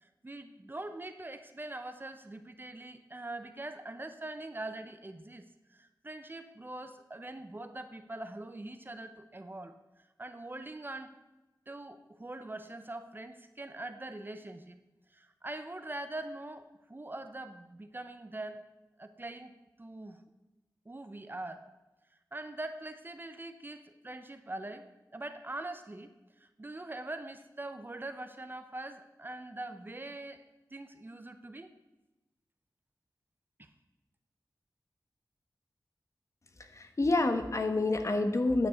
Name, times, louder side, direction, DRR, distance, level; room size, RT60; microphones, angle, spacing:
voice 1, 0.0-5.4 5.7-9.8 10.2-11.1 11.7-14.8 15.1-18.6 19.0-19.5 19.8-20.2 20.9-21.6 22.3-26.1 26.4-30.4 30.7-31.7 33.6-33.7, right 2 dB, 30° right, 9 dB, 0.8 m, -43 dB
voice 2, 36.7-38.7, left 2 dB, 45° left, 7 dB, 1.2 m, -28 dB
9.6 x 6.1 x 8.3 m, 1.0 s
wide cardioid pair, 95°, 7 cm